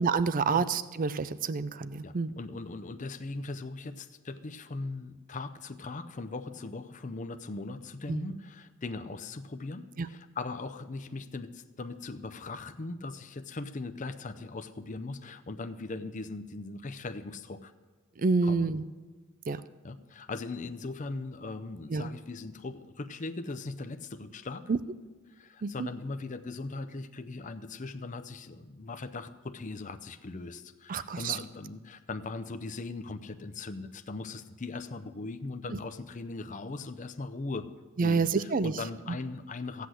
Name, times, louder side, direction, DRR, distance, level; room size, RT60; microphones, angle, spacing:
voice 1, 0.0-2.3 8.1-8.4 10.0-10.1 18.2-18.8 19.5-19.6 21.9-22.1 24.7-24.8 25.6-25.9 30.9-31.4 38.0-38.7 39.1-39.2, right 4 dB, 40° right, 15 dB, 0.4 m, -28 dB
voice 2, 2.0-17.7 18.4-18.7 19.8-24.6 25.3-37.7 38.0-39.9, left 3 dB, 35° left, 9 dB, 0.6 m, -39 dB
16.0 x 8.3 x 7.7 m, 1.3 s
head